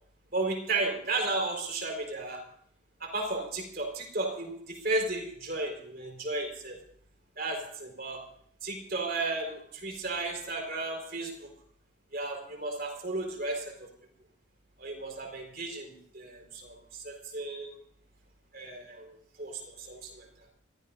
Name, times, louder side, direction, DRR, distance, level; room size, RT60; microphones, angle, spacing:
voice 1, 0.3-2.4 3.0-6.8 7.4-8.2 8.6-11.5 12.1-13.9 14.8-17.8 18.5-20.3, right 2 dB, 50° right, 2 dB, 4.6 m, -34 dB
26.5 x 14.5 x 2.7 m, 0.64 s
head